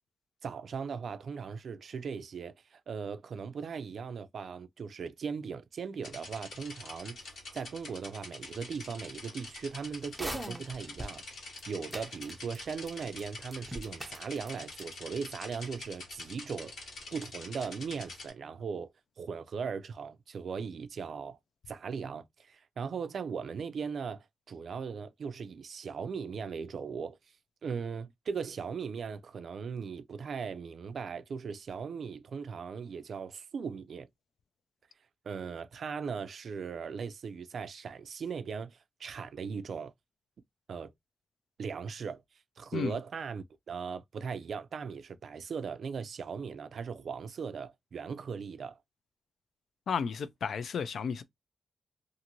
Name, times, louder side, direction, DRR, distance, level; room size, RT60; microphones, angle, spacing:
voice 1, 0.4-11.4 11.7-16.7 17.1-18.9 19.2-21.4 21.7-27.2 27.6-34.1 35.2-39.9 40.7-40.9 41.6-42.2 42.6-48.8, right 6 dB, 60° right, 0.3 m, -38 dB
sound 1, 6.0-18.3, left 2 dB, 90° left, 1.4 m, -46 dB
sound 2, 10.1-11.1 11.5-11.6 11.9-12.9 13.1-13.2 13.5-14.5 14.8-14.9, right 1 dB, 5° right, 0.5 m, -40 dB
voice 2, 49.9-51.2, left 6 dB, 70° left, 0.4 m, -33 dB
2.6 x 2.5 x 2.9 m
wide cardioid pair, 165°, 0 cm